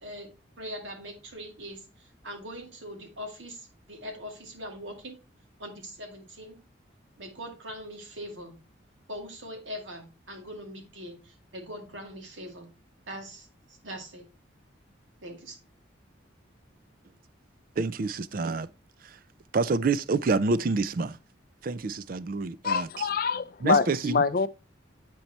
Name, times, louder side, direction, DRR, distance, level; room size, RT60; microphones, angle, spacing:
voice 1, 0.0-5.1 5.6-6.6 7.2-8.6 9.1-12.7 13.1-14.3 15.2-15.6, equal, 80° right, 2.2 m, -42 dB
voice 2, 17.8-18.7 19.5-21.2 21.6-23.1 23.6-24.2, right 3 dB, 45° right, 0.4 m, -27 dB
voice 3, 22.6-24.5, left 5 dB, 50° left, 0.4 m, -25 dB
9.0 x 4.6 x 4.1 m
head